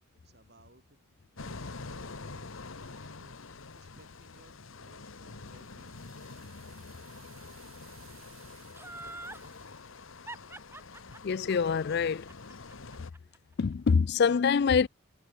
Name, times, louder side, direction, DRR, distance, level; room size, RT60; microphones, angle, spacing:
voice 1, 0.2-3.4 3.7-6.0, right 2 dB, 50° right, 4.7 m, -61 dB
sound 1, 1.4-13.1, left 3 dB, 70° left, 1.2 m, -46 dB
sound 2, 4.8-10.0, right 13 dB, 70° right, 4.3 m, -60 dB
Laughter, 8.7-9.5 10.3-13.4 13.7-13.8, right 2 dB, 10° right, 1.0 m, -44 dB
voice 2, 11.2-12.2 13.6-14.9, left 6 dB, 50° left, 0.4 m, -25 dB
head